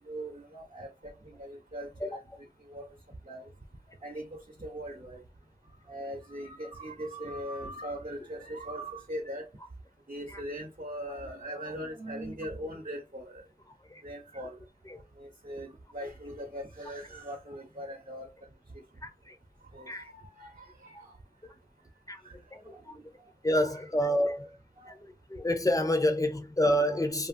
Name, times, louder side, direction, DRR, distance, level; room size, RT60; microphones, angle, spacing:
voice 1, 0.1-1.1 1.4-2.2 2.7-2.9 3.3-3.4 4.0-5.2 5.9-9.5 10.1-13.4 14.0-14.6 15.2-15.7 15.9-18.3 19.7-21.1 22.3-22.4 23.6-23.8 24.8-24.9, equal, 50° right, 0.9 m, -40 dB
voice 2, 19.0-19.3 19.9-20.0 22.1-22.2 22.7-22.9 23.4-24.5 25.3-27.3, equal, 20° left, 0.6 m, -28 dB
2.9 x 2.4 x 2.5 m
wide cardioid pair, 45°, 16 cm